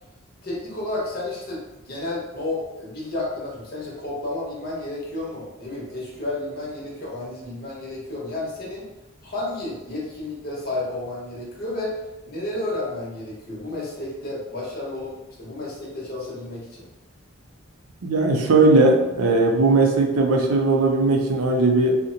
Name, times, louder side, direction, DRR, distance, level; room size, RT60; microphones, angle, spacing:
voice 1, 0.4-8.9 9.2-12.0 12.3-15.1 15.4-16.8, left 2 dB, 45° left, -5 dB, 0.9 m, -31 dB
voice 2, 18.0-22.0, right 2 dB, 85° right, 1 dB, 0.5 m, -18 dB
2.9 x 2.1 x 3.8 m, 1.0 s
head